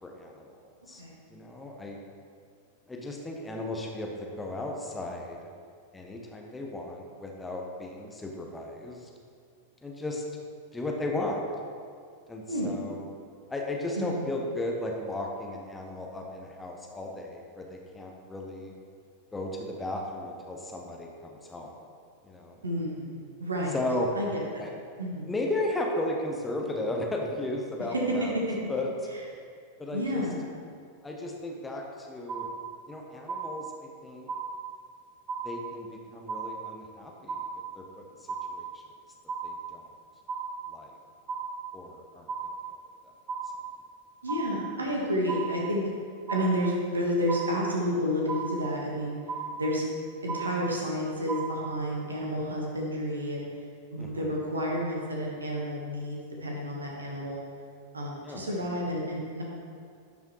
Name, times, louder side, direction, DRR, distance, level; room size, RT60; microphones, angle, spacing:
voice 1, 0.0-0.5 0.9-1.0 1.3-2.0 2.9-5.4 5.9-9.1 9.8-10.2 10.7-11.4 12.3-13.1 13.5-18.7 19.3-21.7 22.2-22.6 23.7-24.1 24.6-24.7 25.3-28.3 28.7-28.9 29.8-30.2 31.0-32.5 32.9-34.3 35.4-37.4 37.7-38.8 39.4-39.9 40.7-40.9 41.7-42.3 54.0-54.3 58.2-58.4, left 1 dB, 10° left, 0 dB, 1.0 m, -35 dB
voice 2, 22.6-23.7 24.1-24.6 25.0-25.3 27.9-28.3 29.9-30.4 44.2-45.8 46.3-49.2 49.5-49.9 50.2-53.5 53.9-57.4 57.9-59.4, equal, 75° right, -2 dB, 1.5 m, -30 dB
sound 1, 32.3-33.0 33.3-34.0 34.3-35.0 35.3-36.0 36.3-37.0 37.3-38.0 38.3-39.0 39.3-40.0 40.3-41.0 41.3-42.0 42.3-43.0 43.3-44.0 44.3-45.0 45.3-46.0 46.3-47.0 47.3-48.0 48.3-49.0 49.3-50.0 50.3-51.0 51.3-52.0, right 5 dB, 30° right, 0.6 m, -36 dB
12.0 x 5.3 x 3.2 m, 2.2 s
figure-of-eight pair, 90°, 0 cm